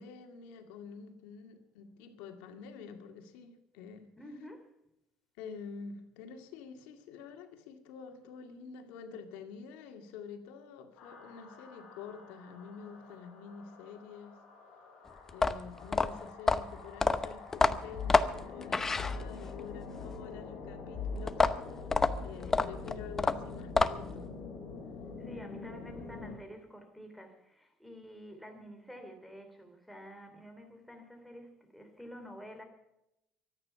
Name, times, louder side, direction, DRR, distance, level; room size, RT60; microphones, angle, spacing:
voice 1, 0.0-4.1 5.4-14.4 15.3-21.9 22.2-24.3, left 6 dB, 90° left, 5 dB, 2.2 m, -48 dB
voice 2, 4.2-4.7 25.2-32.6, equal, ahead, 4 dB, 3.1 m, -49 dB
sound 1, 11.0-26.3, left 4 dB, 60° left, 6.5 m, -44 dB
sound 2, 15.3-19.6 21.3-24.2, left 3 dB, 15° left, 0.8 m, -28 dB
24.0 x 9.4 x 5.8 m, 0.85 s
cardioid pair, 130°, 2 cm